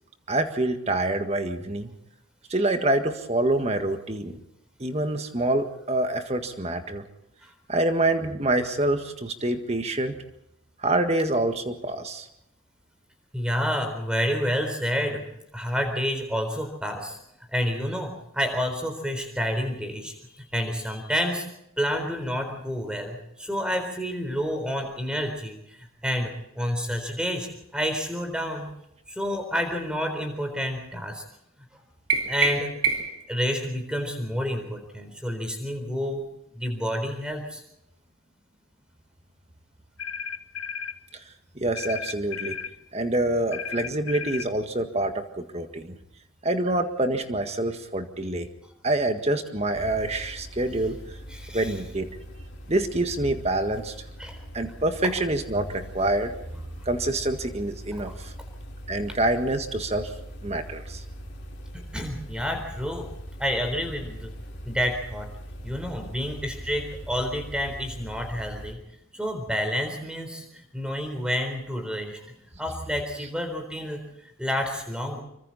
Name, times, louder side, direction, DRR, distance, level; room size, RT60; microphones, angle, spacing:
voice 1, 0.3-1.9 2.5-4.4 4.8-7.1 7.7-10.2 10.8-12.3 41.1-41.2 41.6-42.6 42.9-46.0 46.4-48.5 48.8-51.0 51.5-52.1 52.7-53.9 54.5-56.3 56.9-58.3 58.9-60.1 60.4-61.0, right 2 dB, 30° right, 7 dB, 1.7 m, -26 dB
voice 2, 13.3-15.2 15.5-17.2 17.5-21.4 21.8-28.7 29.1-31.2 32.3-32.7 33.3-36.2 36.5-37.6 51.3-51.8 54.2-54.4 61.9-63.1 63.4-64.3 64.6-65.3 65.6-68.8 69.1-72.2 72.6-75.2, equal, 5° right, 5 dB, 4.1 m, -29 dB
sound 1, 32.1-33.3, right 5 dB, 80° right, 3.7 m, -26 dB
sound 2, 40.0-41.0 41.8-42.7 43.5-44.5, left 6 dB, 85° left, 1.0 m, -34 dB
sound 3, 49.7-68.7, equal, 50° left, 3.2 m, -41 dB
26.0 x 24.0 x 4.2 m, 0.81 s
head